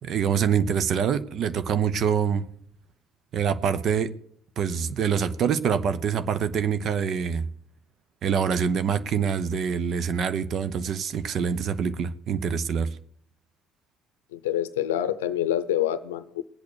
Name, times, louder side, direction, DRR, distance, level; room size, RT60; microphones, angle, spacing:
voice 1, 0.0-2.5 3.3-4.1 4.6-7.4 8.2-13.0, right 7 dB, 55° right, 0.9 m, -25 dB
voice 2, 14.3-16.4, left 11 dB, 85° left, 0.6 m, -26 dB
19.5 x 8.4 x 6.4 m
hypercardioid pair, 55°, 0 cm